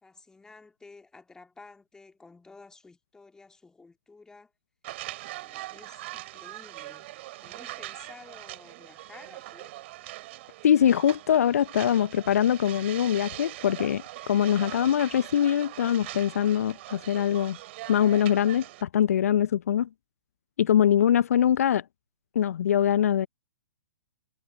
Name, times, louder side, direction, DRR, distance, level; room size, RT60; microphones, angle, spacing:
voice 1, 0.0-4.5 5.3-7.1 7.4-9.7, left 3 dB, 5° left, 2.4 m, -52 dB
sound 1, 4.8-18.8, right 17 dB, 45° right, 3.5 m, -42 dB
voice 2, 10.6-17.6 17.9-19.9 20.6-21.8 22.3-23.3, left 9 dB, 60° left, 0.6 m, -23 dB
figure-of-eight pair, 120°, 9 cm